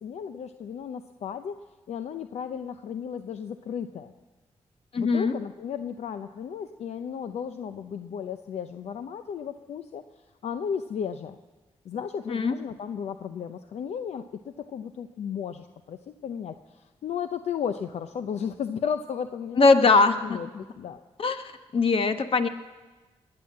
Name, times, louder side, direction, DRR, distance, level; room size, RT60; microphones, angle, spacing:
voice 1, 0.0-1.6 1.9-4.1 5.0-10.0 10.4-11.4 11.8-14.3 14.6-20.5 20.8-21.0, left 7 dB, 75° left, 9 dB, 0.6 m, -34 dB
voice 2, 4.9-5.3 12.3-12.5 19.6-20.6 21.2-22.5, left 4 dB, 55° left, 8 dB, 1.1 m, -21 dB
20.0 x 8.8 x 7.4 m, 1.3 s
cardioid pair, 70°, 11 cm